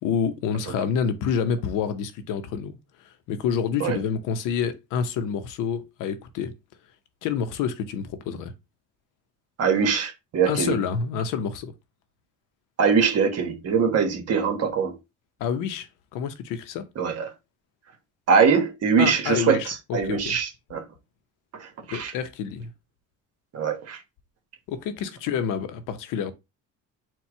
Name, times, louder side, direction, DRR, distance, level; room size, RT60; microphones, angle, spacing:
voice 1, 0.0-2.8 3.3-6.5 7.2-8.5 9.8-9.9 10.5-11.7 15.4-16.9 19.0-20.4 21.9-22.7 24.7-26.3, left 7 dB, 85° left, 0.8 m, -28 dB
voice 2, 9.6-10.8 12.8-15.0 17.0-17.3 18.3-20.8 21.5-22.1 23.5-24.0, right 6 dB, 55° right, 1.4 m, -23 dB
4.4 x 2.3 x 4.6 m
cardioid pair, 120°, 31 cm